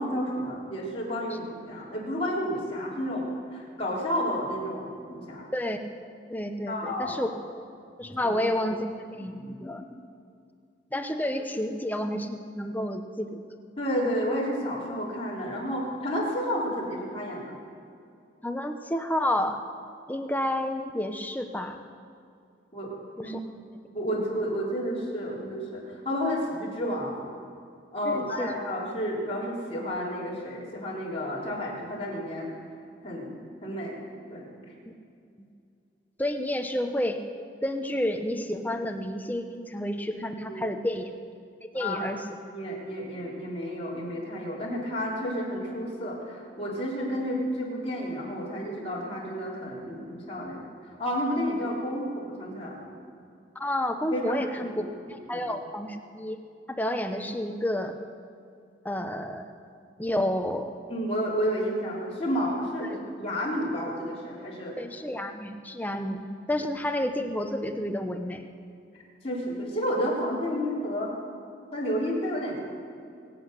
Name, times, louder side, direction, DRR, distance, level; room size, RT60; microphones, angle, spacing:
voice 1, 0.0-3.3 3.5-5.5 6.7-7.2 8.2-8.3 13.8-17.6 22.7-22.9 23.2-23.4 23.9-27.2 27.9-32.5 33.0-33.3 33.6-34.0 34.3-34.5 40.5-40.8 41.8-42.1 42.5-52.9 54.1-54.4 54.7-54.9 55.3-55.5 60.9-64.7 69.2-71.2 71.7-72.6, equal, 30° left, -5 dB, 3.7 m, -31 dB
voice 2, 6.3-7.3 8.0-8.9 9.1-9.9 10.9-13.4 18.4-19.6 20.1-21.8 23.2-23.4 28.0-28.5 35.4-35.5 36.2-37.2 37.6-41.1 41.7-42.2 53.5-54.7 55.1-56.4 56.7-58.0 58.8-59.5 60.0-60.7 62.8-63.0 64.8-68.4, left 1 dB, 10° left, 6 dB, 0.8 m, -30 dB
23.0 x 8.6 x 6.6 m, 2.4 s
head